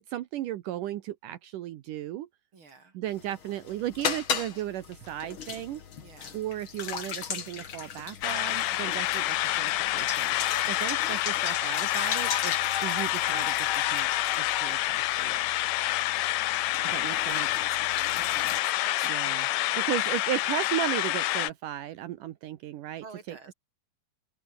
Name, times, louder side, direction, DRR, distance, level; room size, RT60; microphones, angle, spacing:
voice 1, 0.0-2.3 2.9-5.8 6.3-12.6 12.8-14.1 14.4-15.5 16.8-17.5 19.0-19.5 19.7-23.4, right 13 dB, 75° right, 2.5 m, -35 dB
voice 2, 2.5-3.0 6.0-6.4 10.6-10.9 16.1-19.8 23.0-23.5, right 4 dB, 35° right, 4.6 m, -50 dB
sound 1, 3.1-18.6, left 7 dB, 45° left, 2.3 m, -37 dB
sound 2, 8.2-21.5, left 16 dB, 80° left, 1.6 m, -28 dB
open air
omnidirectional pair, 3.9 m